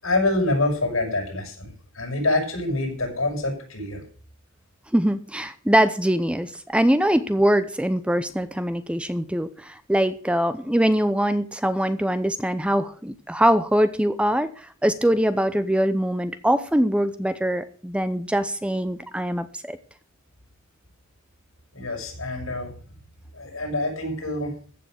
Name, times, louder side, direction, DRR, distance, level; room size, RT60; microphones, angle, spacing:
voice 1, 0.0-4.0 21.7-22.7 23.3-24.5, left 2 dB, 85° left, 1 dB, 6.9 m, -26 dB
voice 2, 4.9-19.8, equal, 5° right, 12 dB, 0.7 m, -23 dB
15.0 x 6.9 x 7.9 m, 0.43 s
head